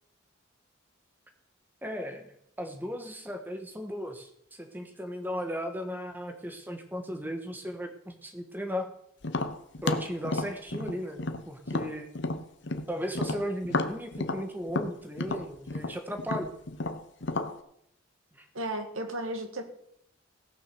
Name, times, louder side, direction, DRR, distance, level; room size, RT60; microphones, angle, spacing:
voice 1, 1.8-8.9 9.8-11.2 11.5-12.1 12.9-16.5 18.3-18.5, equal, 10° right, 5 dB, 1.3 m, -36 dB
Tap, 9.2-12.9 13.2-17.5, left 2 dB, 60° left, 0.9 m, -32 dB
voice 2, 18.5-19.6, right 1 dB, 85° right, 5 dB, 1.9 m, -34 dB
17.0 x 6.4 x 6.9 m, 0.74 s
head